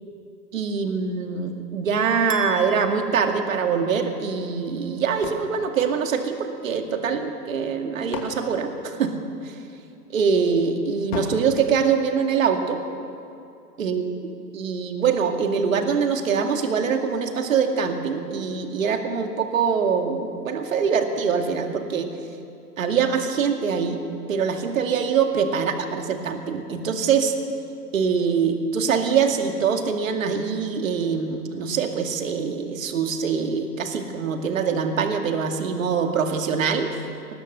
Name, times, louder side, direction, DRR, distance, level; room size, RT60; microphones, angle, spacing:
voice 1, 0.5-9.2 9.4-9.5 10.1-12.8 13.8-14.0 14.5-22.1 22.8-24.0 24.3-27.3 27.9-36.9, right 6 dB, 50° right, 5 dB, 2.3 m, -24 dB
sound 1, 2.3-4.4, right 4 dB, 20° right, 0.6 m, -38 dB
sound 2, 5.2-6.8 7.6-9.6 11.1-12.7, left 4 dB, 30° left, 2.7 m, -37 dB
22.0 x 20.5 x 6.8 m, 2.6 s
hypercardioid pair, 160°, 50 cm